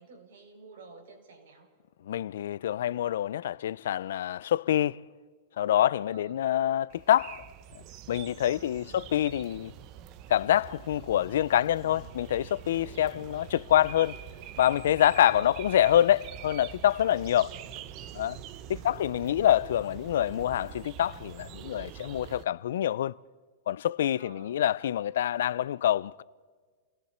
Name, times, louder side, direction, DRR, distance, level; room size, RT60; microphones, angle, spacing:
voice 1, 0.0-1.7 6.1-6.4 8.5-9.1 11.5-12.1 13.1-13.3 15.2-15.5 17.3-18.0 18.7-19.0 24.1-24.5, right 3 dB, 80° right, 6.8 m, -53 dB
voice 2, 2.1-5.0 5.6-7.4 8.1-9.7 10.3-14.2 14.6-17.5 18.1-18.4 18.7-23.1 23.7-26.2, left 11 dB, 80° left, 0.5 m, -26 dB
sound 1, 6.9-22.4, right 10 dB, 35° right, 0.8 m, -45 dB
29.5 x 20.0 x 4.4 m
supercardioid pair, 165°, 0 cm